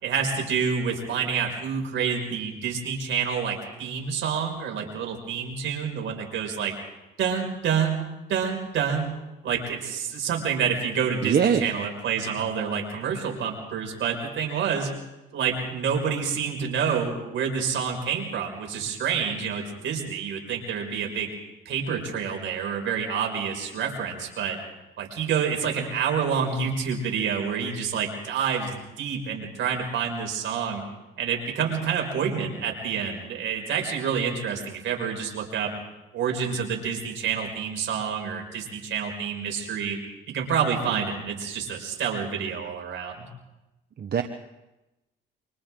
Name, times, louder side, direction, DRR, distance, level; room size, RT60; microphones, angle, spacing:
voice 1, 0.0-6.7 7.2-7.9 8.3-9.1 9.4-14.9 15.3-21.3 21.7-24.6 25.0-30.8 31.2-35.7 36.1-40.0 40.3-43.3, right 7 dB, 75° right, 2 dB, 5.7 m, -28 dB
voice 2, 11.2-11.6 44.0-44.2, right 7 dB, 50° right, 6 dB, 1.3 m, -22 dB
28.5 x 25.5 x 3.8 m, 0.99 s
cardioid pair, 90°, 20 cm